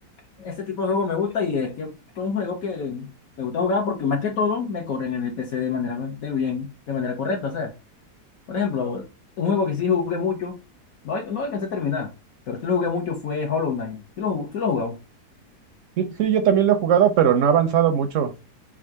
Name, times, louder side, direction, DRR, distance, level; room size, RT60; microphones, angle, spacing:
voice 1, 0.4-3.1 3.4-7.7 8.5-9.1 9.4-10.6 11.0-12.1 12.5-15.0, left 5 dB, 65° left, 1.2 m, -26 dB
voice 2, 16.0-18.4, right 8 dB, 70° right, 0.8 m, -19 dB
3.6 x 2.3 x 4.4 m
omnidirectional pair, 1.7 m